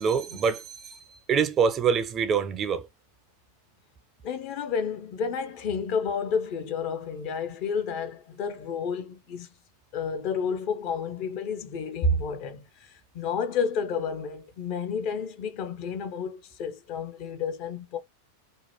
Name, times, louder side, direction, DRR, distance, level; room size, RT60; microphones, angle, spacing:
voice 1, 0.0-2.9, right 6 dB, 25° right, 0.3 m, -25 dB
voice 2, 4.2-9.5 9.9-18.0, left 5 dB, 45° left, 0.7 m, -30 dB
2.8 x 2.2 x 2.9 m
figure-of-eight pair, 90°, 0 cm